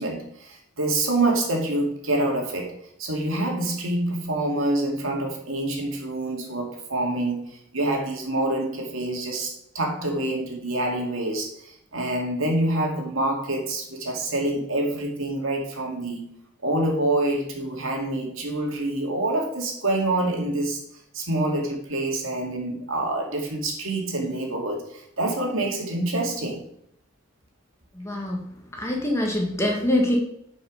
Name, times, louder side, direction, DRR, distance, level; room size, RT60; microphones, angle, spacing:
voice 1, 0.0-2.7 3.0-16.3 16.6-20.8 21.1-26.6, right 2 dB, 70° right, 0 dB, 2.3 m, -26 dB
voice 2, 27.9-30.2, left 1 dB, 15° left, 0 dB, 1.6 m, -25 dB
11.0 x 5.4 x 5.1 m, 0.71 s
head